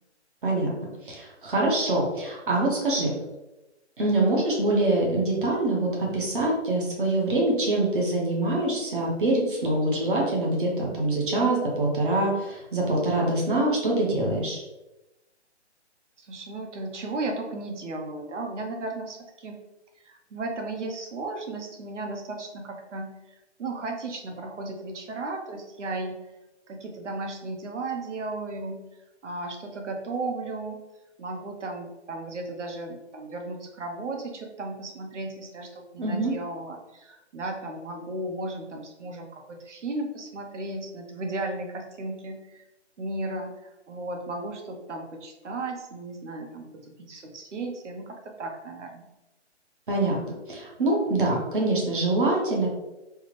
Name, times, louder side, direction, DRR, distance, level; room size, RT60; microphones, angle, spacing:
voice 1, 1.0-3.1 4.0-14.6 36.0-36.3 49.9-50.2 50.5-52.7, right 2 dB, 50° right, -3 dB, 0.8 m, -24 dB
voice 2, 16.2-19.6 20.0-26.3 26.7-28.8 29.2-30.8 31.2-42.7 43.0-49.1, right 2 dB, 90° right, 3 dB, 0.8 m, -35 dB
3.4 x 2.0 x 3.0 m, 1.0 s
hypercardioid pair, 170°, 35 cm